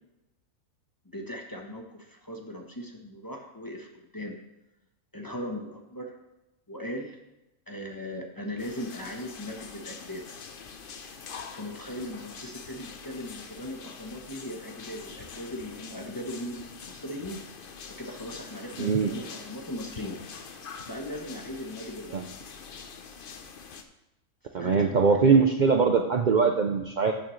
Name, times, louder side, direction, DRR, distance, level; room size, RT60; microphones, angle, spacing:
voice 1, 1.0-4.4 5.1-6.1 6.7-7.2 7.7-10.3 11.5-16.6 16.9-17.4 18.0-20.2 20.9-22.2 24.6-25.3, left 1 dB, 15° left, 1 dB, 0.9 m, -38 dB
sound 1, 8.6-23.8, left 5 dB, 50° left, 0.7 m, -44 dB
voice 2, 18.8-19.1 22.1-22.2 24.5-27.1, right 5 dB, 75° right, 4 dB, 0.4 m, -22 dB
13.0 x 6.2 x 3.2 m, 0.95 s
omnidirectional pair, 1.6 m